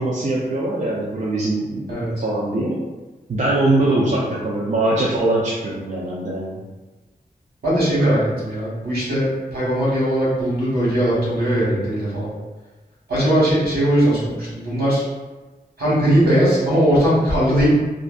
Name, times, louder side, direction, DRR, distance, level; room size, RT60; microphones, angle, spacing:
voice 1, 0.0-2.8 3.3-6.6, right 2 dB, 45° right, -5 dB, 0.4 m, -22 dB
voice 2, 7.6-12.3 13.1-15.0 15.8-17.7, equal, 65° right, -8 dB, 1.3 m, -19 dB
2.5 x 2.1 x 2.4 m, 1.2 s
wide cardioid pair, 115°, 16 cm